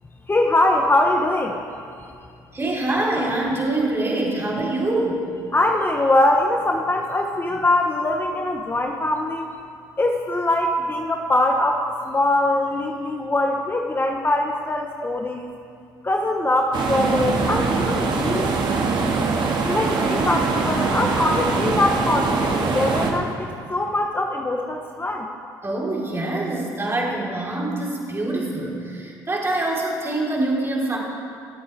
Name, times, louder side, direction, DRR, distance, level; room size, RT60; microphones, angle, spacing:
voice 1, 0.3-1.7 5.5-9.5 10.0-15.5 16.0-18.5 19.6-25.3, left 1 dB, 25° left, 2 dB, 1.1 m, -22 dB
voice 2, 2.5-5.3 25.6-31.0, right 2 dB, 25° right, -4 dB, 3.8 m, -25 dB
sound 1, 16.7-23.1, right 4 dB, 55° right, 1.9 m, -22 dB
24.5 x 8.5 x 3.5 m, 2.3 s
hypercardioid pair, 60°, 10 cm